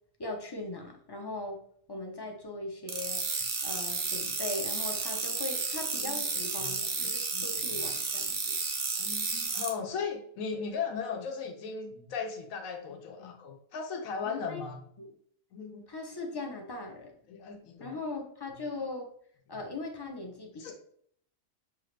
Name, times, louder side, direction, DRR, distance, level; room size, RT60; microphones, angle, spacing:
voice 1, 0.2-1.6 1.9-3.3 3.6-8.6 14.2-14.6 15.0-15.1 15.9-17.1 17.8-19.1 19.5-20.7, left 2 dB, 35° left, 2 dB, 0.3 m, -39 dB
sound 1, 2.9-9.7, right 4 dB, 75° right, 1.3 m, -32 dB
voice 2, 6.0-7.9 9.0-14.8 15.5-15.8 17.3-18.0 19.5-19.6 20.6-20.7, left 6 dB, 85° left, 2 dB, 1.1 m, -38 dB
6.8 x 2.5 x 3.2 m, 0.63 s
omnidirectional pair, 1.4 m